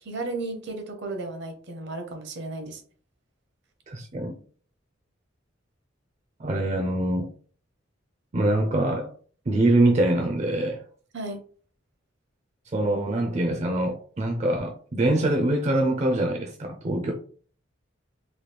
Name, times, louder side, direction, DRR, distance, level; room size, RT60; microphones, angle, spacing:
voice 1, 0.0-2.8 11.1-11.4, right 2 dB, 65° right, 0.7 m, -34 dB
voice 2, 3.9-4.4 6.4-7.3 8.3-9.1 9.5-10.8 12.7-17.1, right 1 dB, 35° right, 0.4 m, -24 dB
3.1 x 2.3 x 3.2 m
head